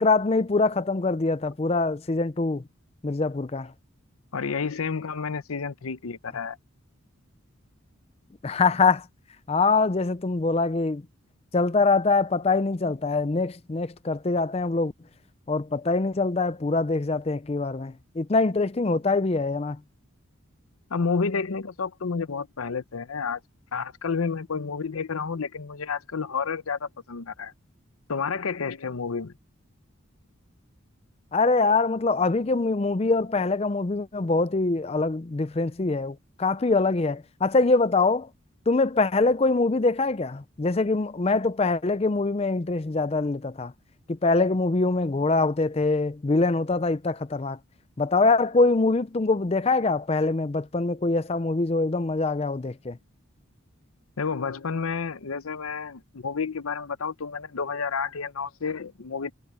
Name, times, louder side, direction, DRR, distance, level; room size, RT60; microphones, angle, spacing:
voice 1, 0.0-2.6 3.0-3.7 8.4-9.1 9.5-11.0 11.5-14.9 15.5-19.8 31.3-38.3 38.7-43.7 44.1-47.6 48.0-53.0, left 3 dB, 30° left, 0.5 m, -24 dB
voice 2, 4.3-6.6 20.9-23.4 23.7-27.5 28.1-29.3 54.2-59.3, left 5 dB, 90° left, 0.7 m, -30 dB
head